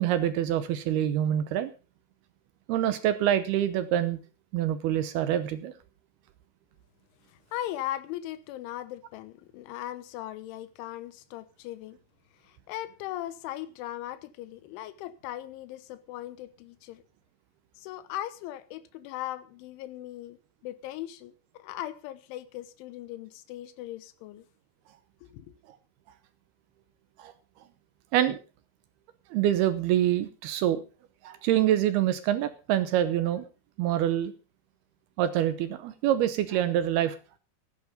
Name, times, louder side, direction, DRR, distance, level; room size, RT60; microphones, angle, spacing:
voice 1, 0.0-1.7 2.7-4.2 4.5-5.7 27.2-27.3 28.1-28.4 29.3-30.8 31.2-33.5 33.8-34.3 35.2-37.4, right 11 dB, 75° right, 2.4 m, -26 dB
voice 2, 7.3-12.0 12.4-17.0 17.8-20.4 20.6-24.5 25.3-25.5, left 13 dB, 85° left, 3.4 m, -39 dB
14.5 x 10.5 x 5.1 m
omnidirectional pair, 5.4 m